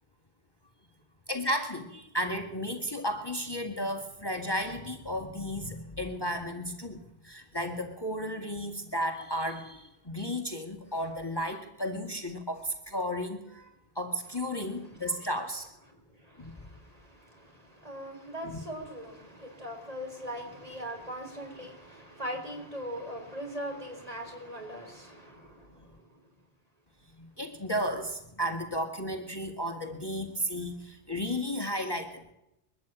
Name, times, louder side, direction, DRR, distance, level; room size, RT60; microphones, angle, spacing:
voice 1, 1.3-15.7 16.4-16.5 18.4-18.5 27.2-32.3, equal, 20° left, 4 dB, 1.9 m, -34 dB
voice 2, 14.9-15.3 16.2-26.2, equal, 35° right, 3 dB, 4.5 m, -41 dB
22.5 x 13.0 x 9.0 m, 0.86 s
omnidirectional pair, 1.1 m